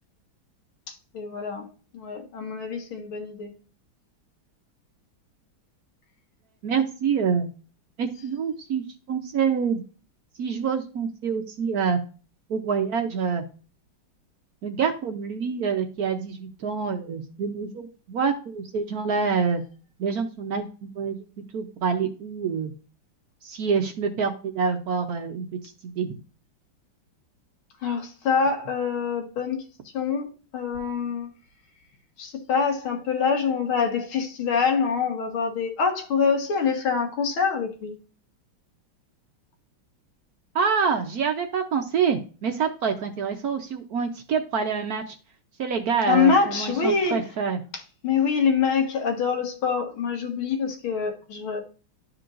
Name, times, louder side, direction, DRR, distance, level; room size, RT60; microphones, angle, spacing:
voice 1, 0.9-1.7 1.9-3.5 27.8-29.7 29.9-30.3 30.5-31.3 32.2-37.9 46.1-47.2 47.7-51.6, left 5 dB, 85° left, 2.3 m, -25 dB
voice 2, 6.6-7.5 8.0-8.8 9.1-9.8 10.4-12.0 12.5-13.4 14.6-19.6 20.0-21.2 21.5-22.7 23.4-26.2 40.5-45.2 45.6-47.6, right 6 dB, 65° right, 1.0 m, -26 dB
13.0 x 4.6 x 2.5 m
omnidirectional pair, 2.2 m